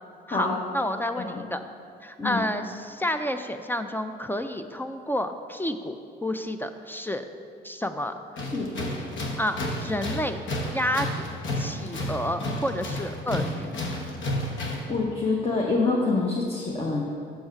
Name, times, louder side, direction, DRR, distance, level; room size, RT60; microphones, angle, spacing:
voice 1, 0.3-1.6 2.0-7.3 7.6-8.5 9.4-10.4 10.7-11.3 11.6-13.7, left 1 dB, 10° left, 8 dB, 0.3 m, -30 dB
Tools, 8.4-14.9, left 1 dB, 70° left, 1.1 m, -31 dB
voice 2, 8.5-8.9 14.9-17.0, left 3 dB, 30° left, -2 dB, 0.9 m, -26 dB
5.7 x 5.4 x 5.8 m, 2.5 s
cardioid pair, 90°, 20 cm